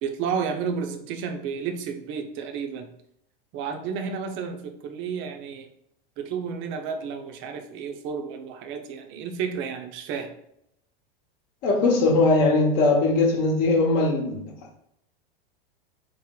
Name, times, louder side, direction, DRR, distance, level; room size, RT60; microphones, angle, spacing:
voice 1, 0.0-2.9 3.5-5.7 6.2-10.3, right 6 dB, 45° right, 0.6 m, -31 dB
voice 2, 11.6-14.5, left 3 dB, 50° left, 0.9 m, -20 dB
3.2 x 2.0 x 3.7 m
hypercardioid pair, 105°, 29 cm